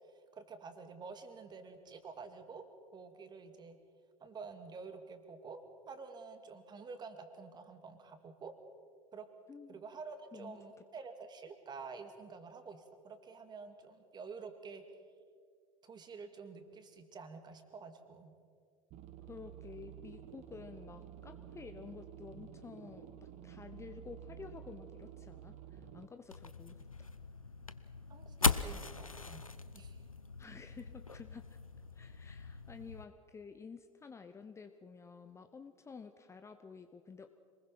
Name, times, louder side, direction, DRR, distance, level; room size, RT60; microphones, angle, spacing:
voice 1, 0.1-2.6 2.9-3.8 4.2-8.5 9.1-9.3 9.7-14.8 15.8-18.3 28.1-30.0, right 4 dB, 25° right, 8 dB, 2.4 m, -49 dB
sound 1, 18.9-26.1, right 10 dB, 40° right, 1.3 m, -51 dB
voice 2, 19.3-27.1 30.4-31.6 31.9-37.3, left 5 dB, 15° left, 8 dB, 0.9 m, -51 dB
sound 2, 26.3-33.0, left 4 dB, 85° left, 0.7 m, -39 dB
27.0 x 20.5 x 5.7 m, 2.1 s
figure-of-eight pair, 80°, 17 cm